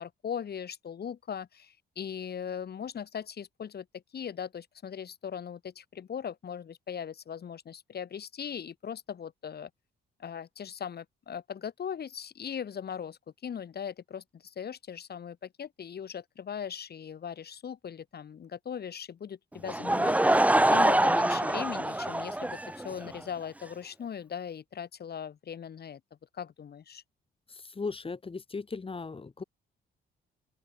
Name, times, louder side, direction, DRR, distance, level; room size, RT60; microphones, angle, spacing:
voice 1, 0.0-9.7 10.2-20.2 20.7-26.0 26.3-27.0, left 8 dB, 55° left, 7.3 m, -39 dB
Laughter / Crowd, 19.6-23.2, right 1 dB, 5° right, 1.4 m, -25 dB
voice 2, 27.7-29.4, left 4 dB, 25° left, 3.1 m, -37 dB
open air
cardioid pair, 90°, 20 cm